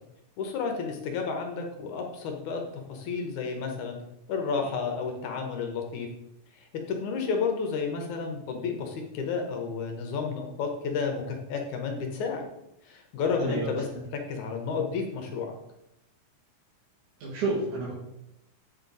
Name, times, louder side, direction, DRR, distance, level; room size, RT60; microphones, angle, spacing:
voice 1, 0.4-4.0 4.3-6.1 6.6-12.5 12.9-13.9 14.1-15.5, left 5 dB, 70° left, 3 dB, 2.3 m, -31 dB
voice 2, 17.2-17.9, right 3 dB, 70° right, -8 dB, 3.4 m, -29 dB
8.4 x 4.4 x 5.2 m, 0.86 s
omnidirectional pair, 3.7 m